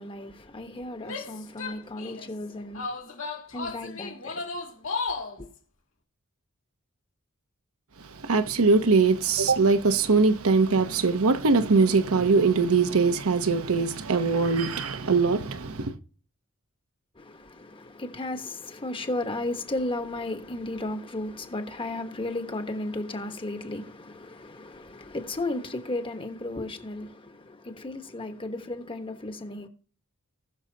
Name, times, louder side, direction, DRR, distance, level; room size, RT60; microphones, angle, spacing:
voice 1, 0.0-2.9 3.5-4.5 5.4-5.5 17.2-29.7, left 2 dB, 25° left, 1.2 m, -34 dB
Female speech woman speaking / Yell, 1.0-2.3 2.7-5.4, left 4 dB, 65° left, 2.5 m, -34 dB
voice 2, 8.1-16.0, right 4 dB, 75° right, 0.9 m, -22 dB
19.5 x 6.5 x 2.8 m
head